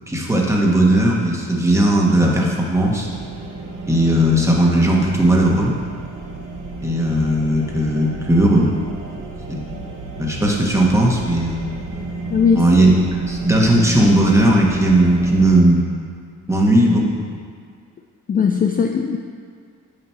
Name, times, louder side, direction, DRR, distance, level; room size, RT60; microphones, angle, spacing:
voice 1, 0.1-3.1 3.9-5.7 6.8-8.7 9.5-9.8 10.2-11.6 12.5-12.9 13.3-15.9 16.5-17.2, right 1 dB, 10° right, -2 dB, 1.2 m, -16 dB
sound 1, 2.7-15.6, right 3 dB, 85° right, 1.0 m, -31 dB
voice 2, 12.3-12.7 18.3-19.2, left 6 dB, 30° left, 4 dB, 0.4 m, -18 dB
8.7 x 3.0 x 5.5 m, 2.1 s
cardioid pair, 90°, 30 cm